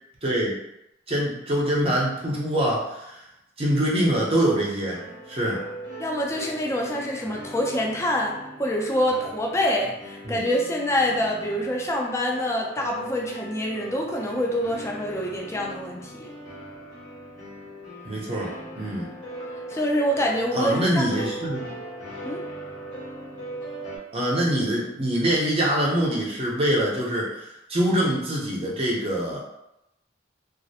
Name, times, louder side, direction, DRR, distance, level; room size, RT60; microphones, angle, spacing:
voice 1, 0.2-0.6 1.1-3.3 3.6-5.0 5.3-5.6 10.2-10.4 18.0-19.1 20.5-21.7 24.1-29.4, right 1 dB, 30° right, -4 dB, 0.6 m, -24 dB
sound 1, 4.9-24.0, right 1 dB, 90° left, 1.1 m, -39 dB
voice 2, 6.0-16.3 19.7-21.2 22.2-22.4, equal, 15° left, -1 dB, 0.4 m, -26 dB
2.3 x 2.0 x 2.7 m, 0.85 s
head